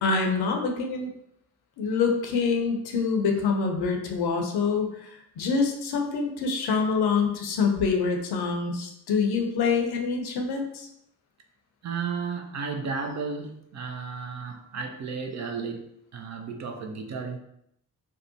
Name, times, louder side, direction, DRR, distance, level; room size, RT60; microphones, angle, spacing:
voice 1, 0.0-1.1 1.8-10.9, left 5 dB, 65° left, 2 dB, 0.6 m, -26 dB
voice 2, 11.8-17.4, right 5 dB, 40° right, 4 dB, 0.4 m, -33 dB
2.6 x 2.1 x 2.6 m, 0.75 s
hypercardioid pair, 50°, 42 cm